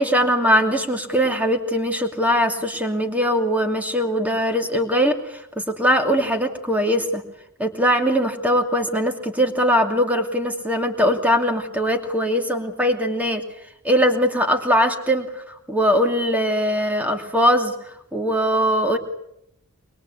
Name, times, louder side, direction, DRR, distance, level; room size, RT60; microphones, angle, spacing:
voice 1, 0.0-7.2 7.6-13.4 13.8-15.4 15.7-17.7 18.1-19.0, equal, 5° right, 5 dB, 2.7 m, -21 dB
23.5 x 22.5 x 8.5 m, 0.76 s
head